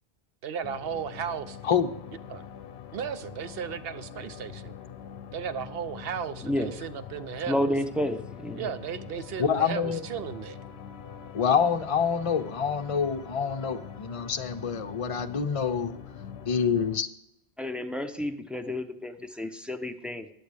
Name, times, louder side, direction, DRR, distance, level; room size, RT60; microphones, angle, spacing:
voice 1, 0.4-1.6 2.3-2.4 2.9-4.7 5.3-7.7 8.5-10.6, right 7 dB, 65° right, 13 dB, 0.9 m, -35 dB
sound 1, 0.6-17.0, left 8 dB, 70° left, 0.9 m, -44 dB
voice 2, 7.5-8.7 17.6-20.3, left 1 dB, ahead, 5 dB, 0.5 m, -30 dB
voice 3, 9.4-10.0 11.3-15.9 16.5-17.1, left 7 dB, 35° left, 7 dB, 0.7 m, -26 dB
13.5 x 9.9 x 3.4 m, 0.80 s
omnidirectional pair, 1.1 m